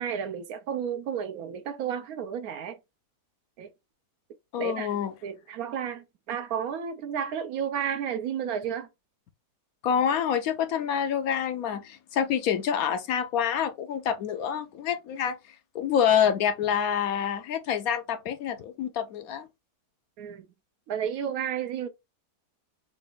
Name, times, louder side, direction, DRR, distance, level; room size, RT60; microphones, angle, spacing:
voice 1, 0.0-2.8 3.6-3.7 4.6-8.9 20.2-20.5 20.9-21.9, right 8 dB, 70° right, 1.0 m, -32 dB
voice 2, 4.5-5.1 9.8-15.4 15.7-19.5, left 8 dB, 70° left, 1.0 m, -27 dB
3.9 x 2.4 x 3.8 m
omnidirectional pair, 1.7 m